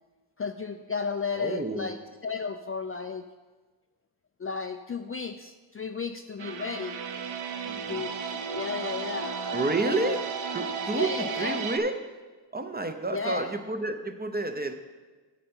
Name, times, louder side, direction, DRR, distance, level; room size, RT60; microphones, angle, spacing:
voice 1, 0.4-2.0 2.2-3.2 4.4-7.0 7.9-10.1 10.9-11.6 13.1-13.5, left 5 dB, 30° left, 7 dB, 0.4 m, -34 dB
voice 2, 1.3-2.0 7.7-8.1 9.5-10.2 10.5-12.0 12.5-14.7, right 2 dB, 20° right, 7 dB, 0.7 m, -30 dB
sound 1, 6.4-11.8, right 6 dB, 80° right, 0.8 m, -34 dB
9.1 x 6.5 x 4.4 m, 1.3 s
cardioid pair, 55°, 48 cm